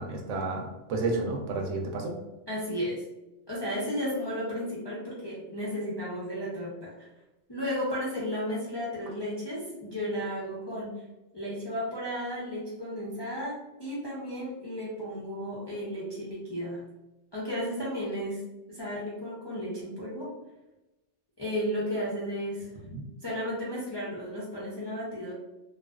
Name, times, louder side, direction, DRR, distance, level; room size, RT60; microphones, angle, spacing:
voice 1, 0.0-2.2 22.8-23.0, right 3 dB, 85° right, 2 dB, 0.9 m, -31 dB
voice 2, 2.5-3.0 3.5-7.1 7.5-10.9 11.3-16.8 17.3-18.4 18.7-20.3 21.4-22.7 23.2-25.3, equal, 40° left, -8 dB, 0.3 m, -33 dB
2.4 x 2.4 x 2.3 m, 1.0 s
omnidirectional pair, 1.3 m